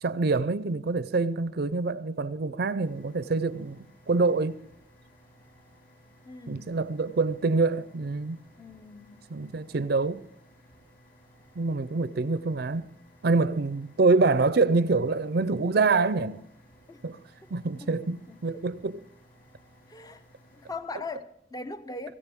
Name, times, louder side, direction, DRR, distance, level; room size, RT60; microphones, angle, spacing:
voice 1, 0.0-4.6 6.5-8.4 9.3-10.2 11.6-12.9 13.2-16.4 17.0-17.2 17.5-19.0, right 3 dB, 60° right, 0.5 m, -26 dB
sound 1, 2.8-20.8, equal, 55° left, 6.3 m, -58 dB
voice 2, 6.2-6.8 8.6-9.3 16.9-17.0 17.8-17.9 18.3-18.4 19.9-20.2 20.5-22.1, left 3 dB, 20° left, 0.6 m, -40 dB
24.5 x 16.5 x 3.6 m
head